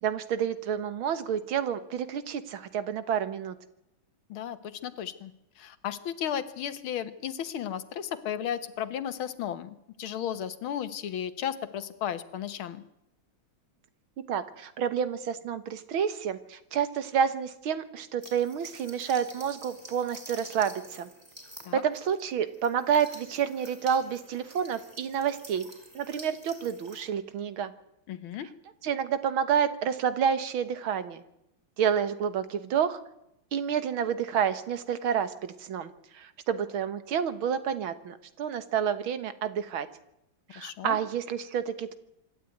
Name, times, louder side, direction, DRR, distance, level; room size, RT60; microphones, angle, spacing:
voice 1, 0.0-3.6 14.3-21.1 21.7-25.7 25.9-27.7 28.8-31.2 31.8-33.0 33.5-39.9 40.5-41.9, right 8 dB, 80° right, 13 dB, 2.1 m, -29 dB
voice 2, 4.3-12.8 21.7-21.8 28.1-28.5 40.6-41.0, left 9 dB, 85° left, 13 dB, 2.1 m, -34 dB
sound 1, 18.2-27.0, equal, 10° right, 4.9 m, -49 dB
26.0 x 12.0 x 9.3 m, 0.83 s
omnidirectional pair, 2.2 m